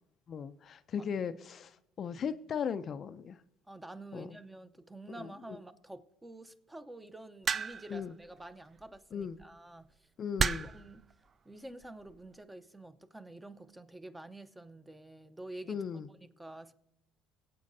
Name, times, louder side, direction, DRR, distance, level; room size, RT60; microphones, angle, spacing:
voice 1, 0.3-3.4 4.1-4.3 5.2-5.3 7.9-8.1 9.1-9.4 10.2-10.7 15.7-16.1, left 7 dB, 45° left, 11 dB, 0.4 m, -37 dB
voice 2, 3.7-10.1 10.6-11.0 11.4-15.9 16.2-16.7, right 2 dB, 10° right, 10 dB, 0.8 m, -48 dB
sound 1, 7.5-8.0 9.2-9.4 10.4-10.9 11.8-12.1, right 6 dB, 35° right, 0.4 m, -31 dB
23.5 x 8.3 x 2.7 m, 0.85 s
supercardioid pair, 95°, 0 cm